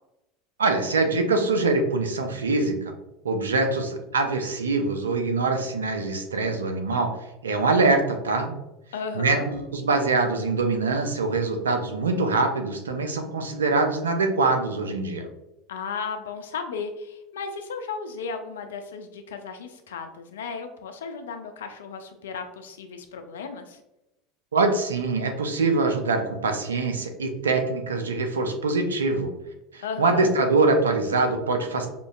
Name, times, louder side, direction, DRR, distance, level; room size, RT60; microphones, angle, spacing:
voice 1, 0.6-2.7 3.2-7.1 7.4-8.5 9.1-15.2 24.5-29.3 29.7-31.9, right 3 dB, 90° right, 5 dB, 0.5 m, -24 dB
voice 2, 8.9-9.5 15.7-23.8 29.8-30.3, left 5 dB, 80° left, 7 dB, 0.4 m, -35 dB
5.1 x 2.5 x 2.4 m, 0.90 s
hypercardioid pair, 80°, 0 cm